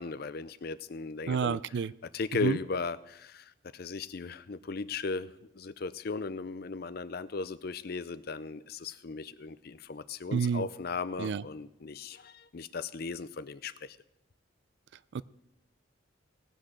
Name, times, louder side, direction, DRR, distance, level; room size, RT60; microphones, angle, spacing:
voice 1, 0.0-1.6 2.1-14.0, left 4 dB, 50° left, 15 dB, 0.5 m, -37 dB
voice 2, 1.3-1.9 2.4-2.6 10.3-10.6 11.2-11.4 15.1-15.2, right 6 dB, 55° right, 19 dB, 0.3 m, -29 dB
18.0 x 6.2 x 6.5 m, 0.86 s
head